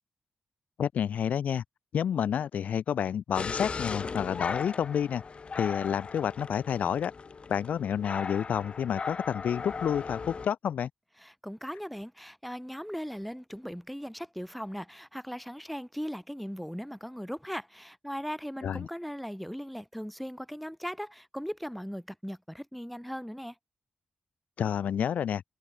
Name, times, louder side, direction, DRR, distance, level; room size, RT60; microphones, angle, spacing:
voice 1, 0.8-1.6 1.9-5.2 5.5-7.1 7.5-10.9 18.6-18.9 24.6-25.4, left 8 dB, 80° left, 0.4 m, -29 dB
sound 1, 3.4-10.5, left 5 dB, 45° left, 1.4 m, -37 dB
voice 2, 11.2-23.5, equal, ahead, 4.4 m, -38 dB
cardioid pair, 95°, 3 cm